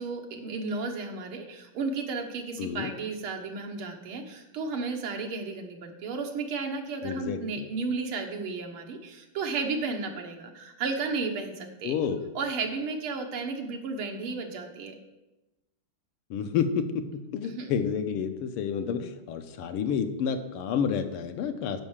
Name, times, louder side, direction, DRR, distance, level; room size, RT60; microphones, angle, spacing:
voice 1, 0.0-11.9 12.3-15.0 17.4-17.7, right 4 dB, 75° right, 3 dB, 2.0 m, -33 dB
voice 2, 2.6-2.9 7.0-7.6 11.8-12.2 16.3-16.8 17.3-21.8, left 7 dB, 85° left, 8 dB, 1.7 m, -29 dB
10.0 x 5.5 x 7.3 m, 1.0 s
omnidirectional pair, 2.4 m